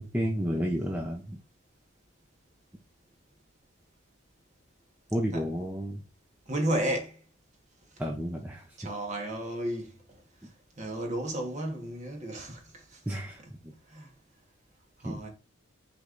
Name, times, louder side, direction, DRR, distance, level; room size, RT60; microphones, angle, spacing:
voice 1, 0.0-1.4 5.1-6.0 8.0-8.6 13.1-13.7 15.0-15.1, equal, 10° right, 0.5 m, -31 dB
voice 2, 6.5-7.2 8.8-10.0 10.8-13.0 13.4-13.5 13.9-14.1 15.0-15.3, right 1 dB, 35° right, 1.3 m, -33 dB
6.3 x 3.3 x 2.5 m
head